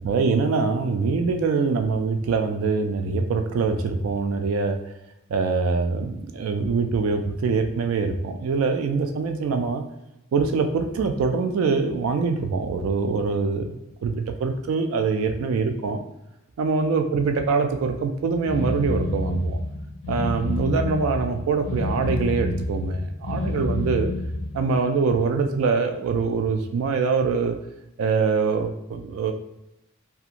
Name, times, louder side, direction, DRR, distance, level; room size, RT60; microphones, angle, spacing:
voice 1, 0.0-4.8 5.3-9.8 10.3-16.0 16.6-19.6 20.1-24.1 24.5-27.6 28.0-29.3, right 4 dB, 80° right, 7 dB, 0.3 m, -24 dB
sound 1, 18.4-24.7, left 2 dB, 75° left, 0.4 m, -28 dB
2.8 x 2.3 x 2.4 m, 0.88 s
head